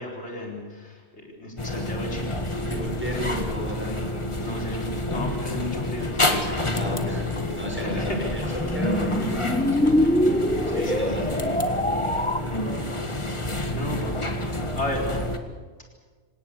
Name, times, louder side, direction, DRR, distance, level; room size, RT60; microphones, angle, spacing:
voice 1, 0.0-2.4 3.1-4.0 4.4-7.0 7.4-7.5 7.7-8.2 8.4-8.6 10.8-11.6 13.7-15.3, left 1 dB, 85° left, 0 dB, 4.7 m, -35 dB
sound 1, 1.6-15.4, left 1 dB, 25° left, 1.8 m, -29 dB
voice 2, 2.6-4.4 6.7-7.3 7.5-11.8 12.4-13.0, equal, 10° right, 0 dB, 6.3 m, -34 dB
sound 2, 7.6-12.4, left 1 dB, 5° left, 1.2 m, -24 dB
26.5 x 18.0 x 8.3 m, 1.4 s
omnidirectional pair, 1.1 m